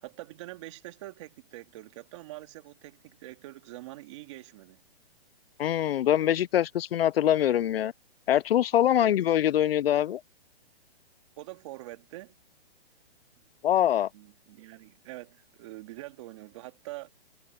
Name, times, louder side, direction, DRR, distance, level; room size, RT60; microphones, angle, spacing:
voice 1, 0.0-4.9 8.9-9.2 11.4-12.3 14.1-17.1, right 18 dB, 30° right, 2.1 m, -44 dB
voice 2, 5.6-7.9 8.3-10.2 13.6-14.1, left 11 dB, 65° left, 0.5 m, -24 dB
hypercardioid pair, 170°, 32 cm